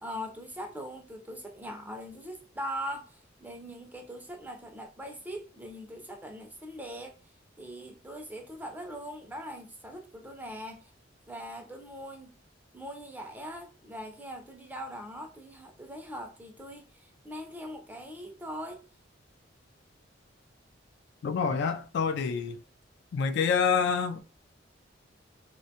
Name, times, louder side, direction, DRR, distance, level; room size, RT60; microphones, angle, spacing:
voice 1, 0.0-3.1 3.4-7.2 7.6-10.8 11.3-12.3 12.7-18.8, equal, 10° right, 0.4 m, -41 dB
voice 2, 21.2-22.6 23.1-24.2, left 6 dB, 65° left, 0.3 m, -27 dB
3.5 x 2.2 x 2.7 m
head